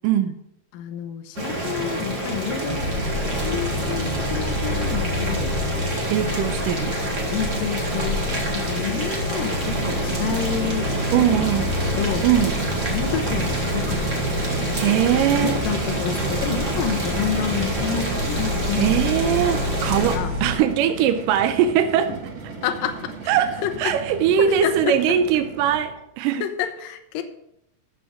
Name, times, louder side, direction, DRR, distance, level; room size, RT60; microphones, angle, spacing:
voice 1, 0.0-0.4 6.1-7.0 11.1-11.7 12.2-12.6 14.8-15.6 18.8-22.1 23.3-26.5, right 9 dB, 80° right, 9 dB, 2.1 m, -21 dB
voice 2, 0.7-2.8 3.4-5.5 6.3-6.8 7.3-10.9 11.2-12.3 12.9-14.2 15.1-19.7 20.0-20.3 22.6-23.1 23.6-23.9 24.4-25.0 26.4-27.2, left 9 dB, 75° left, 6 dB, 2.4 m, -29 dB
Boiling, 1.4-20.2, right 1 dB, 30° right, 1.7 m, -28 dB
sound 1, 2.7-20.6, left 1 dB, 45° left, 5.9 m, -28 dB
sound 2, 9.6-26.0, right 5 dB, 55° right, 2.3 m, -36 dB
13.0 x 6.4 x 5.0 m, 0.78 s
omnidirectional pair, 4.2 m